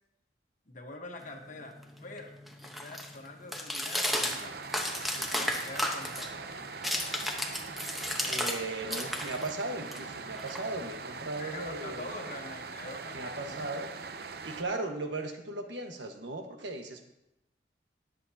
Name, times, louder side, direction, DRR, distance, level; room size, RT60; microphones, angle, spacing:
voice 1, 0.7-2.4 2.6-4.6 5.4-7.2 11.4-13.8, left 2 dB, 45° left, 3 dB, 1.3 m, -45 dB
sound 1, 1.2-8.6 8.9-11.1, equal, ahead, 1.0 m, -34 dB
sound 2, 4.1-14.6, right 4 dB, 60° right, 0.7 m, -42 dB
voice 2, 5.1-5.5 8.2-12.1 13.1-13.9 14.4-17.0, right 2 dB, 90° right, 4 dB, 1.4 m, -37 dB
21.0 x 7.6 x 2.8 m, 0.89 s
head